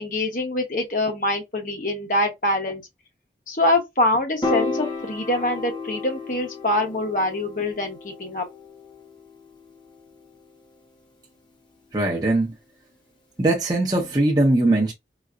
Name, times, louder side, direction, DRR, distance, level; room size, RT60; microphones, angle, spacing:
voice 1, 0.0-2.8 3.5-8.5, left 1 dB, 50° left, 1.0 m, -24 dB
Piano, 4.4-10.8, left 3 dB, 25° left, 0.7 m, -33 dB
voice 2, 11.9-12.5 13.4-14.9, right 2 dB, 20° right, 0.7 m, -20 dB
4.0 x 2.1 x 2.4 m
head